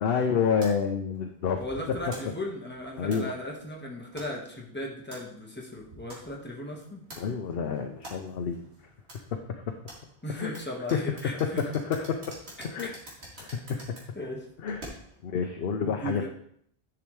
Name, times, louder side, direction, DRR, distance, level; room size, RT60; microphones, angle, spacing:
voice 1, 0.0-1.6 3.0-3.3 7.2-8.6 9.3-9.4 10.3-10.6 10.9-12.2 12.6-12.9 13.4-13.8 14.6-14.8 15.2-16.3, left 6 dB, 65° left, 4 dB, 0.9 m, -28 dB
sound 1, 0.6-15.3, right 1 dB, 80° right, 2.5 m, -49 dB
voice 2, 1.6-7.4 10.2-11.6 12.8-12.9 14.1-14.5 15.8-16.3, equal, 10° left, -2 dB, 1.5 m, -37 dB
10.5 x 6.0 x 3.2 m, 0.67 s
omnidirectional pair, 1.1 m